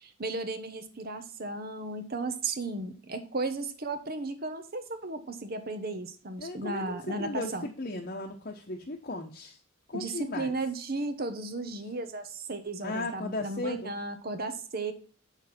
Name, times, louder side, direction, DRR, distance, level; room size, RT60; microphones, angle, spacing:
voice 1, 0.0-7.7 9.9-14.9, right 3 dB, 50° right, 9 dB, 1.2 m, -35 dB
voice 2, 6.4-9.6 9.9-10.5 12.8-13.9, left 2 dB, 45° left, 2 dB, 1.0 m, -36 dB
7.9 x 6.5 x 4.3 m, 0.41 s
head